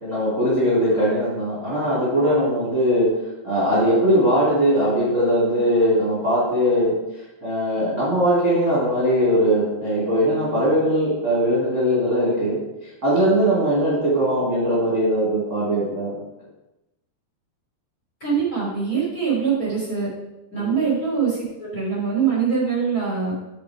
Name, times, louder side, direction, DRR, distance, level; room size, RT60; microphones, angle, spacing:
voice 1, 0.0-3.1 3.4-6.9 7.4-16.1 20.5-20.8, equal, 25° right, -7 dB, 2.3 m, -20 dB
voice 2, 18.2-20.1 20.5-23.3, right 6 dB, 25° left, -4 dB, 3.0 m, -23 dB
7.5 x 7.0 x 4.7 m, 0.98 s
omnidirectional pair, 4.8 m